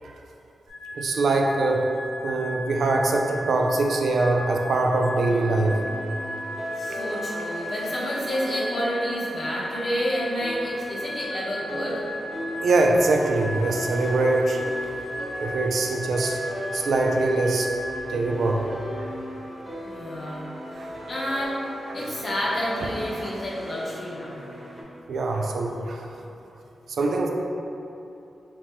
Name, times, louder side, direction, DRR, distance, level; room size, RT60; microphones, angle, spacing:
sound 1, 0.7-18.0, equal, 50° right, 1.1 m, -35 dB
voice 1, 0.9-1.9 2.2-5.8 12.6-14.7 15.4-16.4 16.7-17.7 18.1-18.6 19.0-19.1 20.8-20.9 21.9-22.1 23.2-23.3 25.1-26.1 26.9-27.3, right 2 dB, 75° right, 1 dB, 0.3 m, -23 dB
sound 2, 4.9-24.8, left 1 dB, 5° right, 1.0 m, -38 dB
voice 2, 6.8-12.0 19.8-20.4 21.1-21.6 21.9-24.4, equal, 50° left, -6 dB, 0.9 m, -29 dB
5.6 x 2.2 x 2.9 m, 2.8 s
wide cardioid pair, 110°, 0 cm